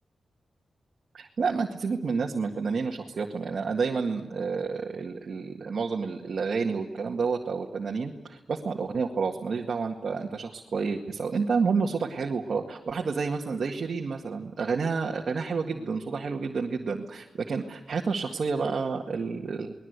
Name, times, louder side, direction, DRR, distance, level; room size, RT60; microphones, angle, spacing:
voice 1, 1.1-19.7, right 5 dB, 55° right, 1 dB, 1.9 m, -29 dB
30.0 x 20.5 x 8.2 m, 1.1 s
wide cardioid pair, 110°, 0 cm